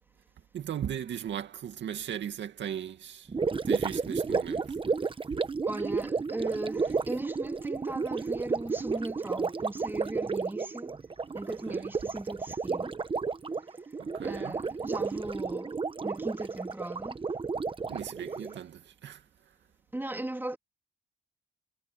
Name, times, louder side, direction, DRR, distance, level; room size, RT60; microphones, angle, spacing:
voice 1, 0.5-3.3 3.6-4.8 11.7-11.9 14.0-14.6 17.9-19.2, right 9 dB, 65° right, 2.3 m, -37 dB
Gurgling, 3.3-18.6, right 4 dB, 25° right, 1.1 m, -32 dB
voice 2, 5.7-10.9 11.3-12.9 14.2-15.8 16.0-17.2 19.9-20.6, right 1 dB, 10° right, 3.4 m, -38 dB
cardioid pair, 90°, 20 cm